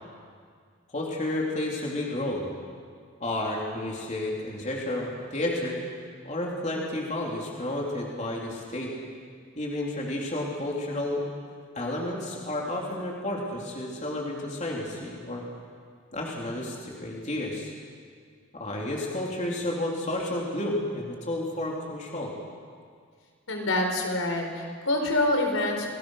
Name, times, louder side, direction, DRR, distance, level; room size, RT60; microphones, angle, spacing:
voice 1, 0.9-2.5 3.2-5.8 6.2-8.9 9.6-11.2 11.7-15.4 16.1-17.7 18.5-22.3, left 1 dB, 35° left, -2 dB, 3.7 m, -31 dB
voice 2, 23.5-25.9, left 2 dB, 85° left, 3 dB, 4.4 m, -26 dB
29.5 x 20.0 x 6.6 m, 2.1 s
head